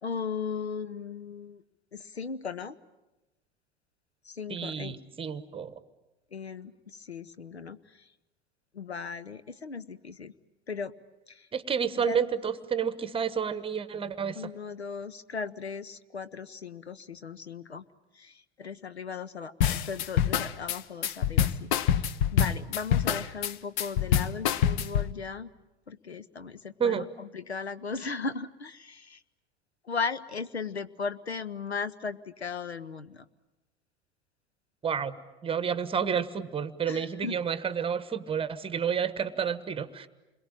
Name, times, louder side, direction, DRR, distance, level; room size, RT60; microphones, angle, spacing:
voice 1, 0.0-1.6 1.9-2.8 4.2-5.0 6.3-8.1 8.7-10.3 10.7-10.9 11.3-11.5 12.0-12.2 14.3-17.8 18.1-22.1 22.3-25.5 25.9-29.2 29.8-33.3 36.9-37.4, left 5 dB, 85° left, 14 dB, 0.9 m, -37 dB
voice 2, 4.5-5.7 11.5-14.4 26.8-27.1 34.8-35.2 35.4-40.1, right 7 dB, 15° right, 14 dB, 1.2 m, -30 dB
sound 1, 19.6-25.1, left 9 dB, 50° left, 0.9 m, -26 dB
28.5 x 22.5 x 8.9 m, 1.0 s
figure-of-eight pair, 85°, 32 cm